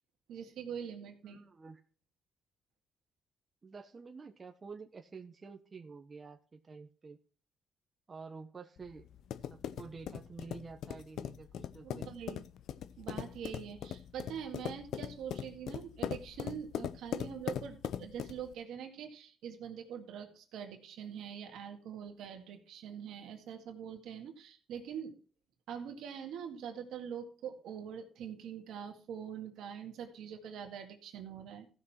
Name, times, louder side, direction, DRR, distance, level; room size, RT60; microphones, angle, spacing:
voice 1, 0.3-1.4 11.8-12.4 13.0-25.2 25.7-31.7, right 8 dB, 80° right, 4 dB, 2.1 m, -44 dB
voice 2, 1.2-1.8 3.6-7.2 8.1-9.1 9.5-12.1, right 4 dB, 35° right, 4 dB, 1.1 m, -49 dB
sound 1, 8.8-18.5, left 10 dB, 75° left, 0.6 m, -40 dB
15.0 x 6.3 x 4.4 m, 0.40 s
cardioid pair, 90°, 0 cm